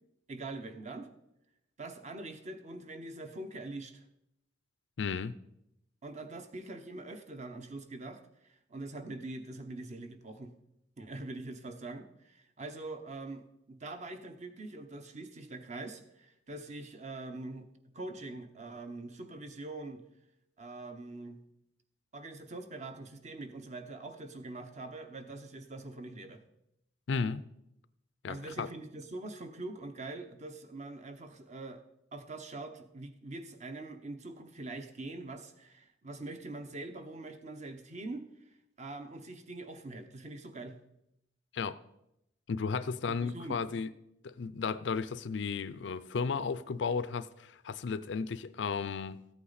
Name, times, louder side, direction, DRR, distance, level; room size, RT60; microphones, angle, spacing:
voice 1, 0.3-1.1 1.8-4.0 6.0-10.5 11.0-17.7 17.9-20.0 20.6-21.4 22.1-26.4 28.3-31.8 32.1-38.3 38.8-40.8 43.1-43.6, right 2 dB, 40° right, 0.9 m, -43 dB
voice 2, 5.0-5.4 27.1-27.4 28.2-28.7 41.5-41.8 42.5-43.9 44.2-49.2, left 5 dB, 75° left, 0.5 m, -34 dB
14.0 x 8.5 x 4.1 m
head